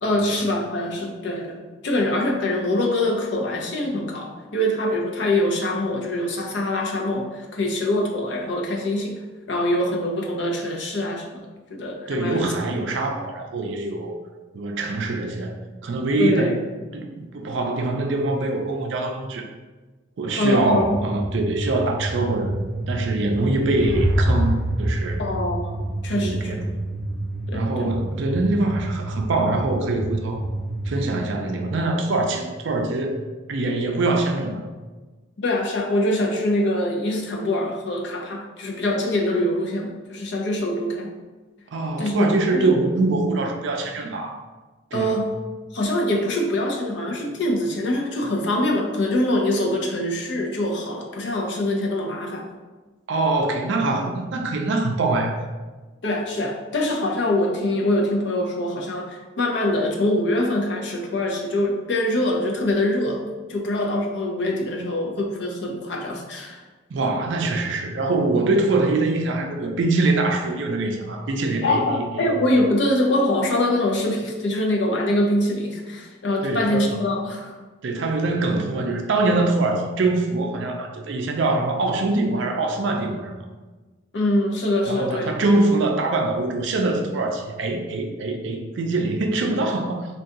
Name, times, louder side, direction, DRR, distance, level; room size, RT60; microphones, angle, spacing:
voice 1, 0.0-9.2 9.5-11.4 11.7-12.5 16.2-16.6 20.4-21.0 25.2-26.6 27.5-27.9 35.4-41.1 42.0-42.7 44.9-45.3 45.7-52.5 56.0-63.2 63.5-66.6 71.6-77.5 84.1-85.3, left 1 dB, 60° left, 1 dB, 0.5 m, -24 dB
voice 2, 12.1-14.1 14.5-15.6 15.8-16.6 16.9-19.4 20.2-25.2 26.1-26.7 27.5-30.4 30.9-33.2 33.5-34.6 41.7-44.4 44.9-45.2 53.1-55.4 66.9-72.3 76.4-76.9 77.8-83.4 84.9-90.1, right 2 dB, 65° right, 3 dB, 0.4 m, -23 dB
sound 1, 20.7-31.1, right 2 dB, 35° left, 1.1 m, -30 dB
sound 2, 23.2-26.5, equal, ahead, 0.7 m, -25 dB
2.7 x 2.3 x 3.6 m, 1.3 s
head